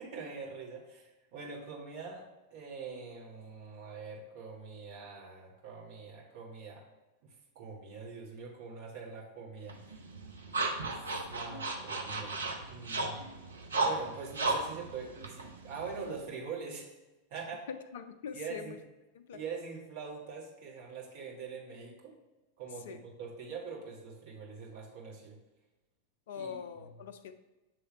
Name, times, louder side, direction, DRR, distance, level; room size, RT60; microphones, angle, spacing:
voice 1, 0.0-2.2 2.5-6.8 7.2-9.8 10.8-12.4 12.7-13.2 13.8-16.9 17.3-17.6 18.3-18.8 19.3-22.1 22.6-25.4 26.3-26.6, right 5 dB, 50° right, -2 dB, 1.6 m, -44 dB
sound 1, 9.7-16.2, right 3 dB, 75° right, 0.7 m, -35 dB
voice 2, 17.7-18.8 19.1-19.4 22.8-23.0 26.3-27.3, left 7 dB, 55° left, 10 dB, 0.4 m, -43 dB
7.8 x 3.3 x 4.5 m, 1.1 s
figure-of-eight pair, 90°, 0 cm